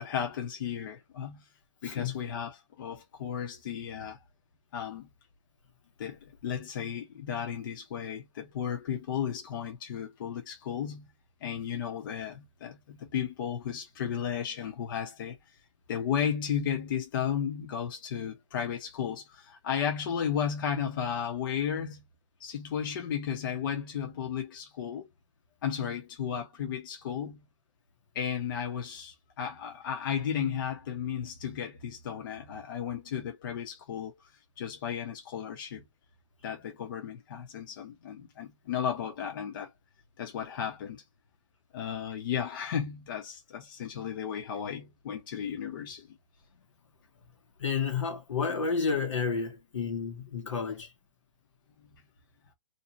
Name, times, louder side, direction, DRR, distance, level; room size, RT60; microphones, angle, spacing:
voice 1, 0.0-1.4 1.8-4.2 4.7-5.1 6.0-11.1 11.4-15.4 15.9-22.0 22.4-25.1 25.6-27.4 28.1-34.2 34.6-35.9 36.4-39.7 40.2-41.0 41.7-46.1 51.8-51.9, left 8 dB, 45° left, 0.8 m, -34 dB
voice 2, 47.6-50.9, left 5 dB, 75° left, 1.2 m, -31 dB
2.7 x 2.3 x 2.7 m
hypercardioid pair, 160°, 16 cm